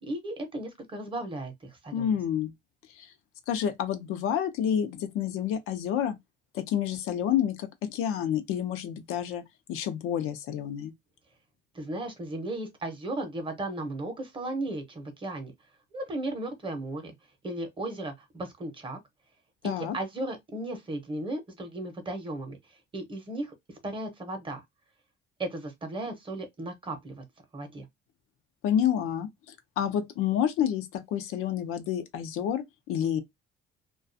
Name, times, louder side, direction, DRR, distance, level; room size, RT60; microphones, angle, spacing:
voice 1, 0.0-2.1 11.7-15.5 15.9-17.1 17.4-19.0 19.6-22.6 22.9-23.5 23.8-24.6 25.4-27.2 27.5-27.9, right 2 dB, 25° right, 0.7 m, -35 dB
voice 2, 1.9-2.5 3.0-3.1 3.5-6.2 6.5-9.4 9.7-10.9 19.6-20.0 28.6-29.3 29.8-33.2, left 9 dB, 85° left, 0.6 m, -29 dB
2.3 x 2.3 x 2.5 m
cardioid pair, 140°, 21 cm